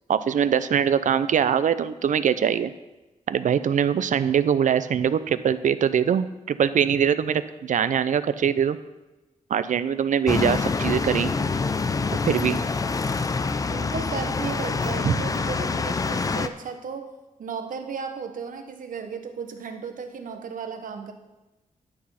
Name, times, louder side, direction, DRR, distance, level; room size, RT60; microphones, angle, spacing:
voice 1, 0.1-2.7 3.3-8.8 9.5-11.3 12.3-12.6 15.0-15.2, right 8 dB, 70° right, 14 dB, 0.5 m, -22 dB
sound 1, 10.3-16.5, left 4 dB, 25° left, 0.4 m, -26 dB
voice 2, 13.7-17.1 17.4-21.1, right 6 dB, 85° right, 6 dB, 1.1 m, -35 dB
11.5 x 6.2 x 5.6 m, 1.0 s
wide cardioid pair, 175°, 14 cm